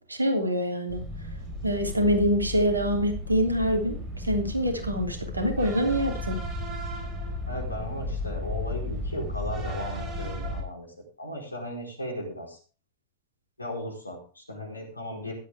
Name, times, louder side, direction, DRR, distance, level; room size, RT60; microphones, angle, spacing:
voice 1, 0.1-1.0 1.6-4.0 4.2-6.4, equal, 80° right, 4 dB, 3.2 m, -25 dB
sound 1, 0.9-10.6, left 1 dB, 30° right, 4.8 m, -34 dB
voice 2, 7.5-10.9 11.2-12.6 13.6-15.3, equal, 80° left, 1 dB, 4.6 m, -36 dB
15.0 x 11.5 x 3.6 m, 0.39 s
figure-of-eight pair, 90°, 0 cm